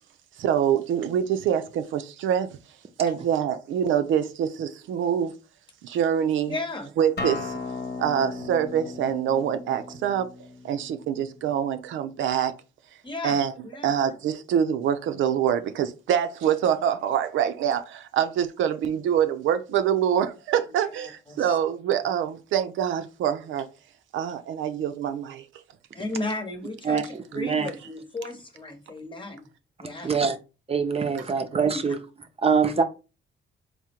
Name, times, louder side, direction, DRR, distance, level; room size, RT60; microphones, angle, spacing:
voice 1, 0.4-2.6 3.0-5.3 5.8-6.6 7.0-7.6 8.0-10.3 10.6-12.5 13.2-13.5 13.8-23.7 24.1-25.5, right 9 dB, 75° right, 0.5 m, -25 dB
voice 2, 6.5-6.9 13.0-13.4 13.6-13.9 20.7-21.6 26.0-29.5 29.8-30.1 31.6-31.9, left 2 dB, 25° left, 1.0 m, -35 dB
Acoustic guitar, 7.2-12.4, left 3 dB, 55° left, 1.2 m, -37 dB
voice 3, 27.3-27.7 29.8-30.4 30.7-32.0 32.4-32.8, right 6 dB, 30° right, 0.5 m, -24 dB
3.6 x 2.1 x 4.3 m
cardioid pair, 90°, 20 cm